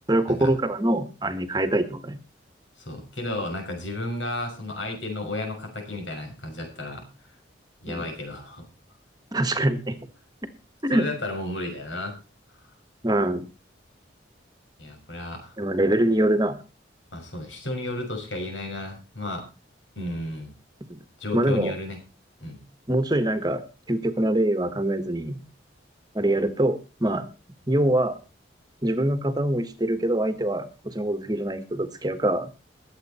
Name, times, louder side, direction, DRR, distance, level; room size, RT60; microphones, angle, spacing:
voice 1, 0.1-2.2 7.9-8.0 9.3-10.0 10.8-11.1 13.0-13.5 15.6-16.6 20.9-21.0 21.3-21.7 22.9-23.6 23.9-25.4 26.1-27.3 27.7-28.2 28.8-32.5, right 1 dB, 20° right, 10 dB, 1.4 m, -24 dB
voice 2, 2.8-7.4 7.8-8.6 10.9-12.2 12.6-12.7 14.8-15.5 17.1-19.5 20.0-20.5 21.2-22.0 22.4-22.6, left 2 dB, 85° left, 4 dB, 6.0 m, -33 dB
20.5 x 8.1 x 4.3 m, 0.30 s
head